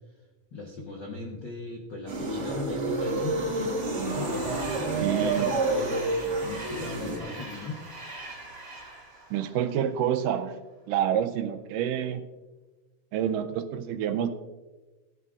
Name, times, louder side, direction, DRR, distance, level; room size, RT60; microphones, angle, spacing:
voice 1, 0.5-7.8, left 3 dB, 65° left, -2 dB, 1.1 m, -38 dB
sound 1, 2.1-7.2, right 2 dB, 60° right, 0.7 m, -29 dB
Train, 2.9-10.4, right 2 dB, 25° right, 2.5 m, -44 dB
voice 2, 5.0-5.5 9.3-10.6 10.9-12.2 13.1-14.3, right 9 dB, 80° right, 9 dB, 2.2 m, -28 dB
16.0 x 11.0 x 2.5 m, 1.2 s
omnidirectional pair, 3.9 m